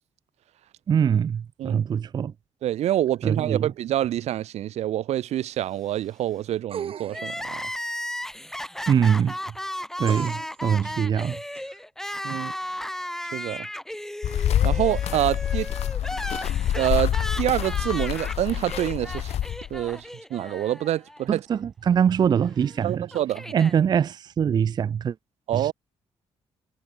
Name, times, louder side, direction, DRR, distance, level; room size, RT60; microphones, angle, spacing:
voice 1, 0.9-2.3 3.2-3.7 8.9-9.3 10.0-11.4 21.3-23.1 23.5-25.1 25.5-25.7, right 8 dB, 40° right, 0.4 m, -23 dB
voice 2, 2.6-7.7 12.2-12.5 13.3-13.7 14.6-15.7 16.7-19.3 19.7-21.4 22.8-23.5 25.5-25.7, right 12 dB, 90° right, 1.0 m, -26 dB
sound 1, 6.7-7.4 10.1-10.7 11.5-11.6, right 8 dB, 60° right, 2.3 m, -36 dB
Crying sobbing, 7.1-21.2 21.5-21.6 22.6-23.7, left 1 dB, 5° left, 1.7 m, -35 dB
sound 2, 14.2-19.8, left 11 dB, 75° left, 1.3 m, -26 dB
cardioid pair, 130°, 11 cm